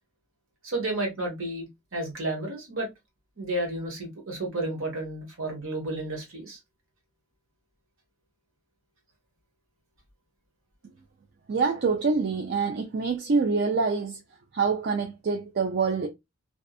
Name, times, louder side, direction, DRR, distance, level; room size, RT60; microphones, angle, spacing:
voice 1, 0.6-2.9 3.4-6.6, right 1 dB, 65° right, 1.2 m, -32 dB
voice 2, 11.5-14.2 14.5-16.1, right 4 dB, 45° right, 0.4 m, -26 dB
2.6 x 2.3 x 2.3 m
head